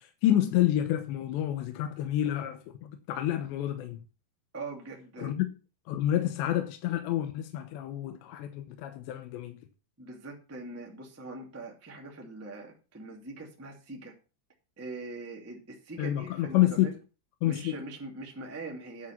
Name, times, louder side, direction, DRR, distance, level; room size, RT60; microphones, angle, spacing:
voice 1, 0.0-4.0 5.2-5.5 5.9-9.6 16.0-16.9 17.4-17.8, left 13 dB, 75° left, 3.0 m, -29 dB
voice 2, 4.5-5.3 10.0-14.1 14.8-16.9 17.4-19.1, right 2 dB, 10° right, 0.6 m, -42 dB
10.5 x 7.4 x 5.8 m
omnidirectional pair, 5.5 m